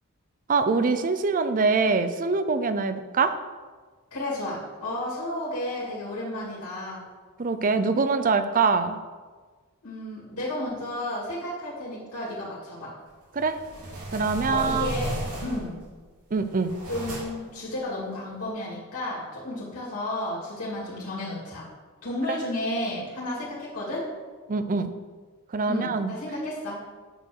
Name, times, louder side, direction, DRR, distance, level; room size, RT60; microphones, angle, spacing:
voice 1, 0.5-3.3 7.4-9.0 13.3-13.6 14.1-14.9 16.3-16.7 22.3-22.4 24.5-24.9 25.5-26.1, right 4 dB, 40° right, 10 dB, 0.5 m, -24 dB
voice 2, 4.1-7.0 9.8-12.9 14.4-15.1 15.4-15.8 16.9-21.7 22.0-24.1 25.7-26.8, left 1 dB, 85° left, -6 dB, 2.5 m, -32 dB
sound 1, 13.3-15.8 16.3-17.5, right 1 dB, 75° right, 3.0 m, -35 dB
8.8 x 4.7 x 6.5 m, 1.4 s
head